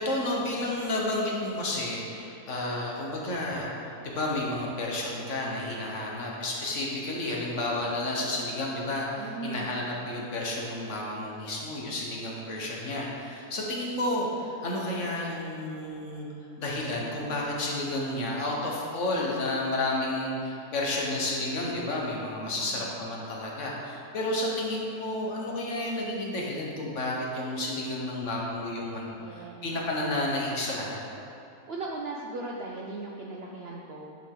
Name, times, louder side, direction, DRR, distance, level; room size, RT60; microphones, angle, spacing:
voice 1, 0.0-16.3 16.6-31.0, left 1 dB, 55° left, -3 dB, 1.3 m, -31 dB
voice 2, 9.2-9.9 22.4-22.8 29.2-29.7 31.7-34.2, right 3 dB, 65° right, -2 dB, 0.6 m, -38 dB
9.5 x 4.9 x 3.8 m, 2.8 s
omnidirectional pair, 1.6 m